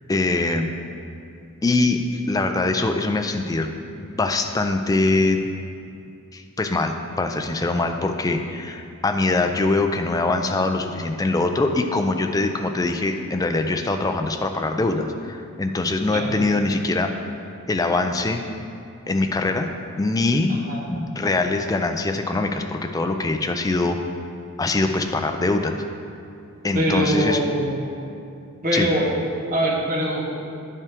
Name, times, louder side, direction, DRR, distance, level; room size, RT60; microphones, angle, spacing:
voice 1, 0.1-0.7 1.6-3.7 4.0-5.5 6.3-17.1 17.7-18.5 19.1-19.7 20.0-20.6 20.9-24.0 24.6-25.8 26.6-27.4 28.7-28.9, left 2 dB, 15° left, 5 dB, 0.3 m, -23 dB
voice 2, 20.5-20.8 26.7-27.8 28.6-29.0 29.5-30.3, right 1 dB, 40° right, -3 dB, 1.2 m, -23 dB
9.2 x 5.6 x 3.5 m, 2.5 s
head